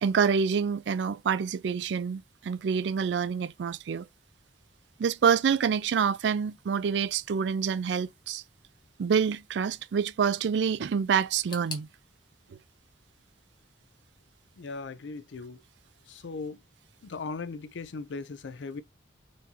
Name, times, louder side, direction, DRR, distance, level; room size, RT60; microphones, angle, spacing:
voice 1, 0.0-4.1 5.0-8.4 9.0-11.9, right 6 dB, 70° right, 0.3 m, -27 dB
sound 1, 11.5-14.4 14.6-15.4 15.7-15.8 16.7-16.8, left 3 dB, 25° left, 1.0 m, -48 dB
voice 2, 14.6-15.6 16.1-16.6 17.0-18.8, left 4 dB, 80° left, 0.5 m, -38 dB
4.1 x 2.7 x 2.8 m
head